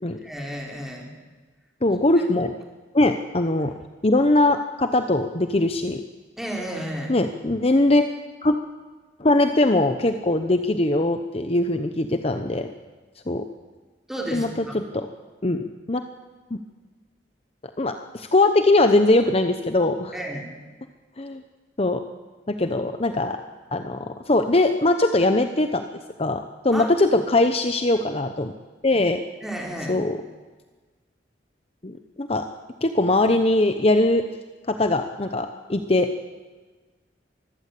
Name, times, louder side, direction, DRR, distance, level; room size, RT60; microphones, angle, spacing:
voice 1, 0.2-1.1 6.4-7.1 14.1-14.8 20.1-20.5 26.7-26.9 29.4-30.0, equal, ahead, -1 dB, 4.1 m, -32 dB
voice 2, 1.8-2.5 2.9-3.7 4.0-6.0 7.1-8.1 8.4-8.6 9.2-12.7 13.3-13.4 14.3-15.1 15.4-16.0 16.5-16.6 17.8-20.1 21.2-21.4 21.8-22.0 22.5-23.4 23.7-25.9 26.2-28.5 28.8-29.2 29.9-30.2 31.8-32.5 32.8-34.2 34.7-36.1, left 2 dB, 35° left, 7 dB, 0.9 m, -21 dB
24.0 x 15.0 x 8.5 m, 1.3 s
head